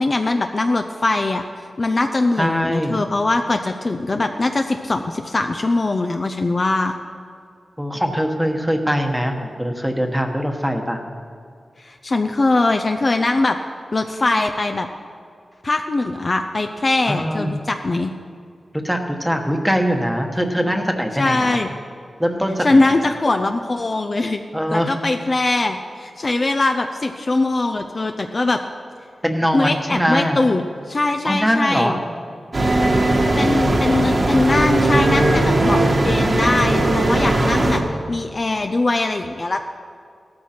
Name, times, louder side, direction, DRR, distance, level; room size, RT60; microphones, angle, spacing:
voice 1, 0.0-1.5 1.8-6.9 11.8-13.6 13.9-14.9 15.6-18.1 21.2-21.7 22.6-24.4 24.7-28.6 29.5-32.0 33.4-37.8 38.1-39.7, left 2 dB, 35° left, 5 dB, 0.6 m, -21 dB
voice 2, 2.4-3.0 7.8-11.0 17.1-17.6 18.8-21.6 22.2-22.9 24.5-24.9 29.2-30.4 31.2-32.0 36.0-36.2 37.2-38.0, equal, ahead, 4 dB, 1.2 m, -22 dB
sound 1, 32.5-37.8, right 1 dB, 40° right, 1.6 m, -18 dB
16.5 x 13.0 x 4.4 m, 2.3 s
wide cardioid pair, 125°, 0 cm